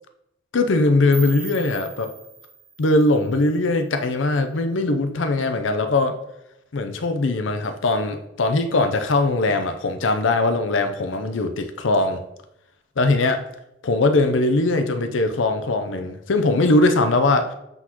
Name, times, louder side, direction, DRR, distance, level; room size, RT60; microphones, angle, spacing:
voice 1, 0.5-2.1 2.8-6.2 6.7-12.2 13.0-13.4 13.8-17.5, left 2 dB, 85° left, 7 dB, 0.7 m, -20 dB
sound 1, 1.1-4.0, right 6 dB, 15° right, 0.6 m, -41 dB
7.9 x 4.0 x 3.0 m, 0.83 s
head